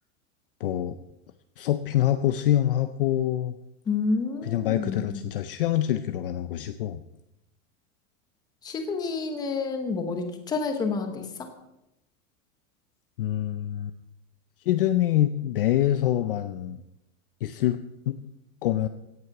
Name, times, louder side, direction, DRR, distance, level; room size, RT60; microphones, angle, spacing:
voice 1, 0.6-1.0 1.6-3.6 4.4-7.0 13.2-13.9 14.7-16.8 17.4-17.8 18.1-18.2 18.6-18.9, left 12 dB, 40° left, 10 dB, 0.5 m, -25 dB
voice 2, 3.9-5.2 8.6-11.2, left 4 dB, 10° left, 5 dB, 1.0 m, -29 dB
16.5 x 9.6 x 5.9 m, 0.89 s
supercardioid pair, 180°, 42 cm